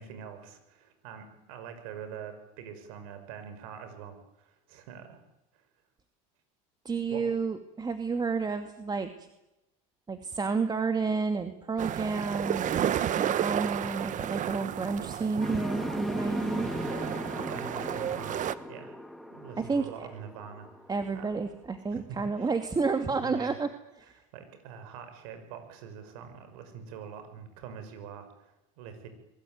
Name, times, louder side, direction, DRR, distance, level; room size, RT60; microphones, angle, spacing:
voice 1, 0.0-5.2 5.5-5.6 7.1-7.2 17.3-19.0 19.3-20.7 21.1-21.4 21.9-22.5 23.0-23.6 24.0-29.1, right 7 dB, 80° right, 8 dB, 6.4 m, -45 dB
voice 2, 6.8-9.1 10.1-16.7 19.6-19.9 20.9-23.7 24.0-24.1, right 4 dB, 25° right, 7 dB, 2.3 m, -30 dB
sound 1, 11.8-18.5, right 10 dB, 45° right, 1.6 m, -32 dB
sound 2, 15.4-21.4, equal, ahead, 2.7 m, -37 dB
26.0 x 22.0 x 9.5 m, 0.94 s
supercardioid pair, 100°, 18 cm